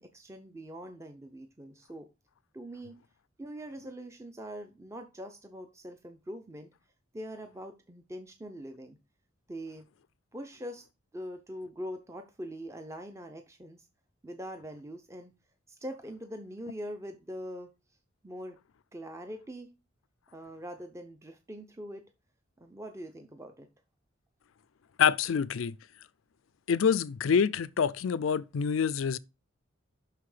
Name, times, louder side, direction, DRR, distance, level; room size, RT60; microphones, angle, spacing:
voice 1, 0.0-2.1 2.5-3.0 3.4-6.7 7.1-9.0 9.5-9.8 10.3-10.8 11.1-13.9 14.2-15.3 15.7-17.7 18.2-18.6 18.9-19.7 20.3-22.0 22.6-23.7, equal, 15° right, 0.6 m, -43 dB
voice 2, 25.0-25.7 26.7-29.2, left 7 dB, 80° left, 0.4 m, -26 dB
6.0 x 5.8 x 4.9 m
head